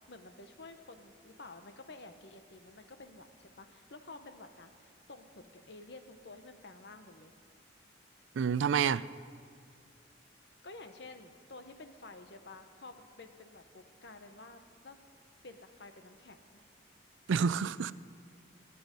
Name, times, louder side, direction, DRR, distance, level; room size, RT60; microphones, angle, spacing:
voice 1, 0.1-7.3 10.4-15.0 15.4-16.4, left 3 dB, 60° left, 1.0 m, -51 dB
voice 2, 8.3-9.1 17.3-17.9, right 6 dB, 80° right, 0.4 m, -28 dB
21.5 x 9.8 x 5.2 m
head